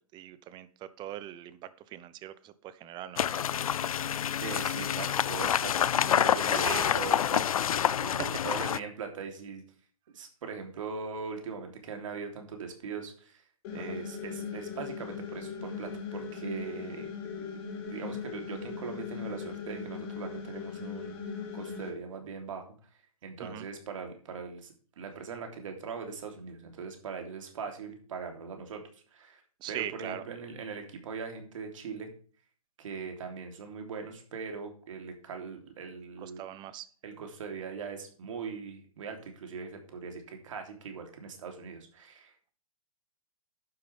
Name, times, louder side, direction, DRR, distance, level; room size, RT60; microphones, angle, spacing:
voice 1, 0.1-3.3 6.5-6.9 7.8-8.6 13.8-14.0 23.4-23.7 29.6-30.2 36.2-36.9, right 12 dB, 25° right, 16 dB, 0.8 m, -41 dB
sound 1, 3.2-8.8, left 9 dB, 70° left, 0.5 m, -27 dB
voice 2, 4.4-7.4 7.9-9.6 10.1-13.4 13.7-17.1 17.9-22.7 23.2-28.8 29.1-29.4 29.7-32.1 32.8-36.4 37.0-42.5, right 5 dB, 60° right, 4 dB, 3.2 m, -40 dB
sound 2, 13.6-21.9, left 5 dB, 45° left, 3.3 m, -39 dB
11.5 x 9.3 x 3.5 m, 0.42 s
hypercardioid pair, 120°, 18 cm